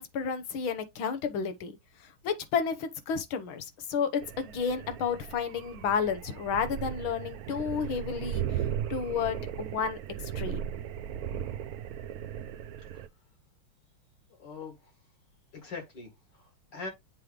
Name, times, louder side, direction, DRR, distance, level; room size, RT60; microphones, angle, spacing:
voice 1, 0.0-8.7 8.9-10.6, left 6 dB, 75° left, 1.9 m, -32 dB
sound 1, 4.2-13.1, right 10 dB, 75° right, 0.8 m, -37 dB
voice 2, 14.4-14.9 15.5-16.9, left 4 dB, 60° left, 2.5 m, -42 dB
7.5 x 3.1 x 5.0 m
omnidirectional pair, 2.3 m